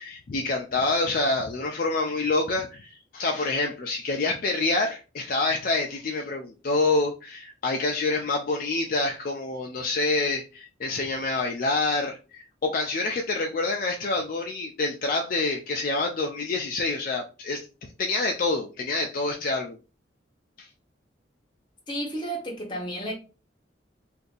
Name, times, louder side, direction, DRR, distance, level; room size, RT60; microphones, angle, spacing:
voice 1, 0.0-17.6 18.0-19.8 20.6-20.7, left 3 dB, 50° left, 0.4 m, -27 dB
voice 2, 21.9-23.1, right 1 dB, 25° left, 1.0 m, -32 dB
2.6 x 2.6 x 3.8 m
head